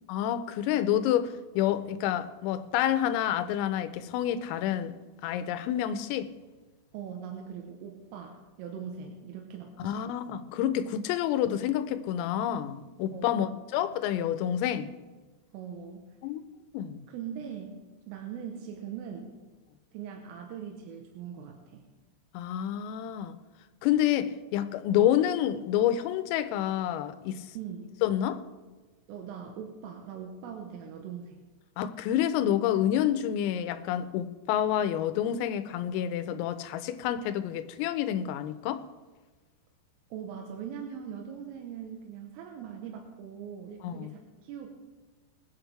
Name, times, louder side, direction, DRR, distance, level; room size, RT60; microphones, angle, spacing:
voice 1, 0.1-4.9 5.2-6.3 9.8-14.9 16.2-16.4 16.7-17.1 22.3-23.3 23.8-27.6 28.0-28.4 31.8-38.8 43.8-44.1, left 11 dB, 90° left, 3.4 m, -28 dB
voice 2, 6.9-10.4 13.1-13.6 15.5-16.1 17.1-17.8 18.1-19.4 19.9-21.8 27.6-28.0 29.1-31.5 40.1-44.7, right 7 dB, 80° right, 3.5 m, -41 dB
23.0 x 9.1 x 3.4 m
omnidirectional pair, 6.0 m